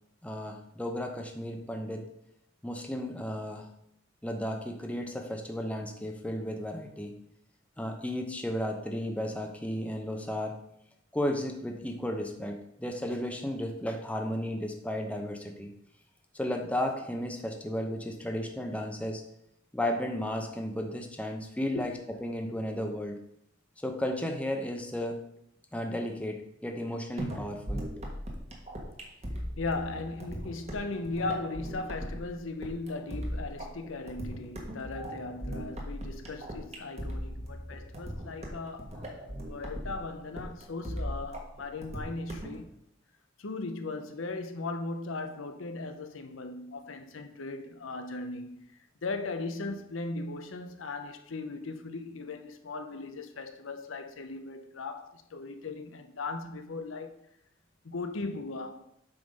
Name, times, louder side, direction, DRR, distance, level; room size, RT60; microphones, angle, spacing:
voice 1, 0.2-2.1 2.6-3.7 4.2-7.1 7.8-10.6 11.1-15.7 16.3-19.2 19.7-21.9 22.2-23.2 23.8-25.2 25.7-28.0, left 1 dB, 5° left, 0.7 m, -34 dB
sound 1, 27.2-42.6, equal, 30° right, 1.4 m, -38 dB
voice 2, 29.6-39.0 39.4-42.7 43.4-48.7 49.0-57.2 57.8-58.8, left 3 dB, 75° left, 0.7 m, -38 dB
8.0 x 3.8 x 5.2 m
head